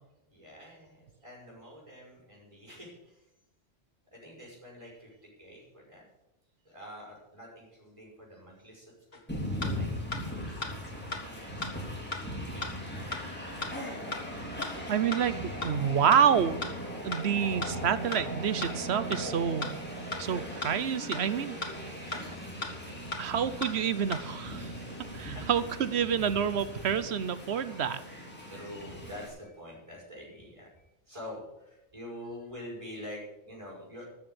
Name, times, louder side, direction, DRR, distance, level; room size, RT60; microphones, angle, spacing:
voice 1, 0.2-3.2 4.1-6.1 6.6-8.9 9.2-9.9 10.2-13.7 17.1-17.4 21.9-22.7 25.2-25.6 28.5-34.0, left 1 dB, 25° right, -2 dB, 5.8 m, -47 dB
sound 1, 9.1-9.2 9.6-9.7 10.1-10.2 10.6-10.7 11.1-11.2 11.6-11.7 12.1-12.2 12.6-12.7 13.1-13.2 13.6-13.7 14.1-14.2 14.6-14.7 15.1-15.2 15.6-15.7 16.1-16.2 16.6-16.7 17.1-17.2 17.6-17.7 18.1-18.2 18.6-18.7 19.1-19.2 19.6-19.7 20.1-20.2 20.6-20.7 21.1-21.2 21.6-21.7 22.1-22.2 22.6-22.7 23.1-23.2 23.6-23.7 24.1-24.2, left 4 dB, 50° left, 1.9 m, -35 dB
Train, 9.3-29.3, equal, 10° left, 3.3 m, -39 dB
voice 2, 14.9-16.6 17.0-19.7 20.2-21.6 23.2-24.7 25.1-28.0, right 8 dB, 65° right, 14 dB, 1.0 m, -28 dB
13.5 x 7.0 x 8.1 m, 0.95 s
omnidirectional pair, 1.2 m